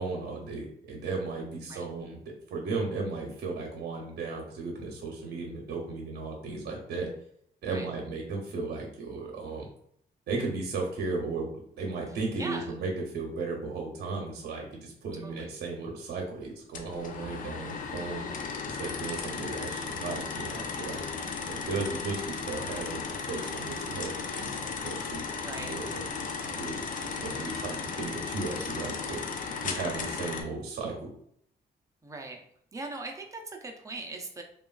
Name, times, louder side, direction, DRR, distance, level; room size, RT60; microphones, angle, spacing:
voice 1, 0.0-2.2 2.5-7.1 7.6-9.7 10.3-11.5 11.8-18.2 18.7-21.0 21.5-24.1 24.4-24.5 24.8-29.2 29.6-31.1, right 3 dB, 65° right, -1 dB, 0.7 m, -35 dB
voice 2, 12.4-12.8 15.2-15.5 25.3-25.7 32.0-32.4 32.7-34.4, right 2 dB, 20° right, 2 dB, 0.5 m, -40 dB
sound 1, 16.7-30.4, left 5 dB, 50° left, 0.4 m, -35 dB
3.0 x 2.3 x 2.3 m, 0.69 s
cardioid pair, 100°, 18 cm